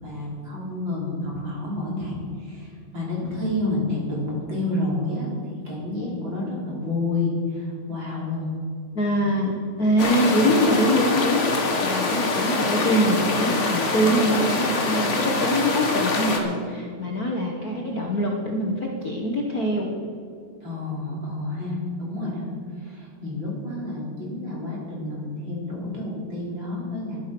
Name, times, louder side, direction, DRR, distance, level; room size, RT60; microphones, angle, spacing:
voice 1, 0.0-8.5 20.6-22.5 22.8-27.2, left 2 dB, 35° right, -3 dB, 4.0 m, -29 dB
voice 2, 8.9-19.9, equal, 75° left, 0 dB, 0.8 m, -24 dB
sound 1, 10.0-16.4, left 3 dB, 45° left, 0.9 m, -24 dB
12.0 x 11.5 x 6.0 m, 2.4 s
omnidirectional pair, 3.7 m